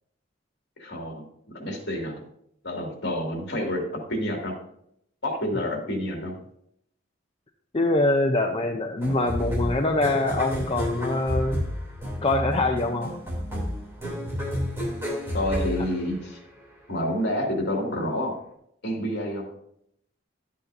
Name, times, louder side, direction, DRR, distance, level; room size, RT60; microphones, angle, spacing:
voice 1, 0.8-2.2 2.6-4.5 5.2-6.4 15.3-16.4 16.9-18.4 18.8-19.5, equal, 60° left, 0 dB, 2.4 m, -29 dB
voice 2, 7.7-11.6 12.2-13.1, left 2 dB, 30° left, 2 dB, 0.6 m, -24 dB
sound 1, 9.0-16.6, equal, 15° right, 2.9 m, -31 dB
11.5 x 8.4 x 2.7 m, 0.73 s
head